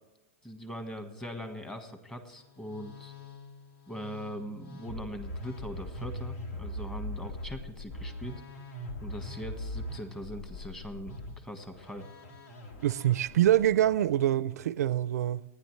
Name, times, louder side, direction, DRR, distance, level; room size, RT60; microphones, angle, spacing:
voice 1, 0.4-3.1 3.9-8.4 9.0-12.0, equal, 5° left, 1.5 m, -41 dB
Musical instrument, 2.3-14.0, left 1 dB, 70° left, 3.3 m, -42 dB
voice 2, 12.8-15.4, right 12 dB, 85° right, 0.5 m, -25 dB
29.5 x 10.0 x 3.2 m
supercardioid pair, 155°, 8 cm